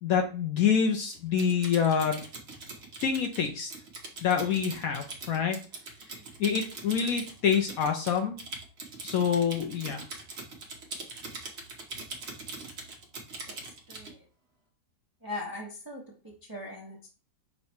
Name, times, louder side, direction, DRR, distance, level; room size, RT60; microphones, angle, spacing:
voice 1, 0.0-2.2 3.0-3.7 4.2-5.6 6.4-8.4 9.0-10.0, left 7 dB, 70° left, 5 dB, 0.9 m, -26 dB
Typing, 1.1-14.1, right 3 dB, 45° right, 1.1 m, -42 dB
voice 2, 13.9-14.2 15.2-17.1, left 2 dB, 20° right, -1 dB, 0.5 m, -40 dB
5.6 x 2.2 x 4.3 m, 0.36 s
omnidirectional pair, 1.8 m